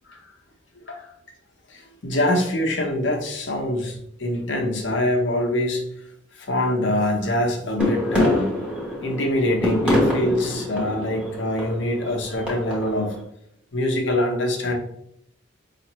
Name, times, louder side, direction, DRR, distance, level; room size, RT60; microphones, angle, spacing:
voice 1, 1.7-5.8 6.3-8.5 9.0-13.1 13.7-14.7, left 1 dB, 70° left, 2 dB, 0.8 m, -24 dB
sound 1, 7.8-13.1, left 1 dB, 5° right, 0.9 m, -25 dB
5.0 x 2.5 x 3.0 m, 0.73 s
head